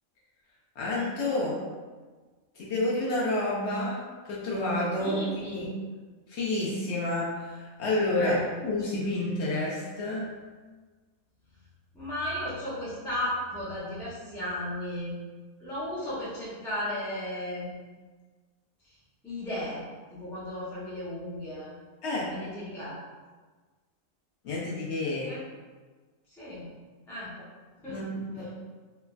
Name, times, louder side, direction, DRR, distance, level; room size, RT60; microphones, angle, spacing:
voice 1, 0.8-1.6 2.6-5.2 5.5-5.7 6.3-10.3 22.0-22.3 24.4-25.3 27.9-28.5, left 2 dB, 65° left, -5 dB, 0.8 m, -29 dB
voice 2, 5.0-5.7 8.2-8.4 11.9-15.1 15.6-17.8 18.8-19.0 19.2-19.9 20.1-21.7 22.3-23.0 25.3-25.4 26.3-26.7 27.1-27.3 27.8-28.0, left 1 dB, 5° left, -9 dB, 0.3 m, -35 dB
3.2 x 2.0 x 2.3 m, 1.4 s
omnidirectional pair, 1.4 m